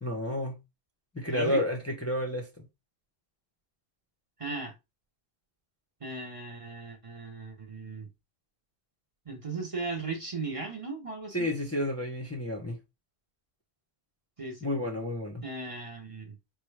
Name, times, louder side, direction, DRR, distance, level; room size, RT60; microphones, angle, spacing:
voice 1, 0.0-0.6 1.1-2.6 11.3-12.8 14.6-15.4, left 1 dB, 15° left, 0.6 m, -31 dB
voice 2, 1.3-1.6 4.4-4.7 6.0-8.1 9.3-11.4 14.4-14.7 15.4-16.3, right 3 dB, 35° right, 0.8 m, -37 dB
4.6 x 2.3 x 3.2 m
omnidirectional pair, 1.1 m